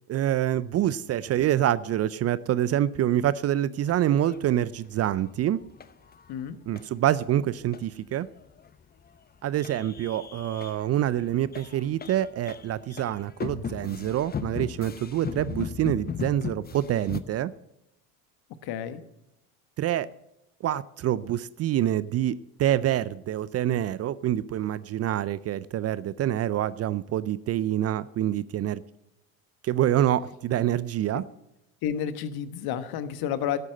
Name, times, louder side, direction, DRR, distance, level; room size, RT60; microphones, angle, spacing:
voice 1, 0.1-5.6 6.7-8.3 9.4-17.5 19.8-20.1 20.6-28.8 29.6-31.2, right 12 dB, 35° right, 18 dB, 0.5 m, -26 dB
sound 1, 3.9-6.3 6.7-6.8 7.2-7.3 7.5-7.8 8.1-8.2 8.4-9.2 9.4-17.2, left 7 dB, 20° left, 0.8 m, -38 dB
voice 2, 18.6-19.0 31.1-31.2 31.8-33.6, left 9 dB, 55° left, 12 dB, 1.3 m, -30 dB
12.0 x 8.3 x 7.6 m, 0.85 s
hypercardioid pair, 75°, 44 cm